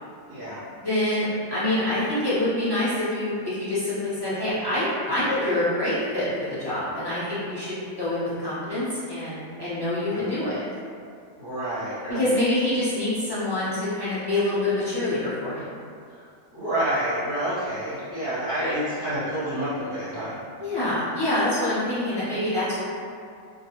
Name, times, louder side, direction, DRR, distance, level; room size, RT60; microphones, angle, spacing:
voice 1, 0.3-0.6 10.1-10.3 11.4-12.4 16.1-16.2 16.5-20.4, right 1 dB, 55° right, -12 dB, 0.6 m, -28 dB
voice 2, 0.8-10.6 12.1-15.6 20.6-22.8, left 1 dB, 30° left, -13 dB, 0.5 m, -26 dB
2.3 x 2.1 x 2.9 m, 2.3 s
omnidirectional pair, 1.4 m